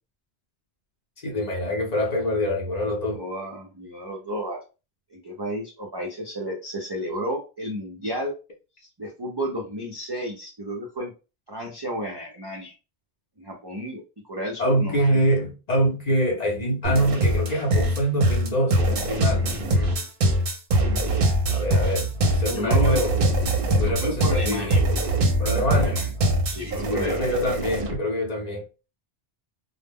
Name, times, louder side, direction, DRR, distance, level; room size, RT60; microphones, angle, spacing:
voice 1, 1.2-3.2 14.6-20.0 21.5-22.1 22.3-23.2 23.8-24.7 25.4-26.0 26.8-28.6, equal, 45° left, 0.7 m, -25 dB
voice 2, 3.0-4.6 5.1-8.3 8.8-11.1 11.5-12.7 13.4-15.2 22.5-23.0 23.9-24.8 25.4-26.1 26.4-27.3, equal, 45° right, 0.3 m, -32 dB
sound 1, 16.8-28.0, right 1 dB, 60° right, 0.7 m, -23 dB
2.1 x 2.1 x 3.4 m
omnidirectional pair, 1.2 m